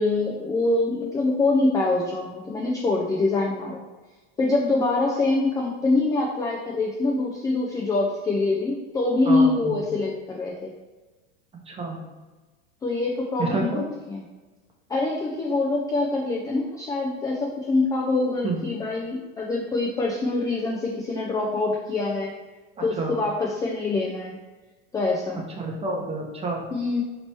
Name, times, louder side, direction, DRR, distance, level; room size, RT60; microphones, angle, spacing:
voice 1, 0.0-3.8 4.4-10.7 12.8-13.8 14.1-14.2 14.9-22.3 22.8-24.4 24.9-25.4 26.7-27.0, left 2 dB, 10° left, -2 dB, 0.3 m, -24 dB
voice 2, 9.2-9.8 11.7-12.0 13.4-13.8 18.4-18.6 22.8-23.1 25.4-26.7, right 3 dB, 20° right, 0 dB, 0.8 m, -29 dB
3.0 x 2.9 x 4.4 m, 1.2 s
hypercardioid pair, 110°, 32 cm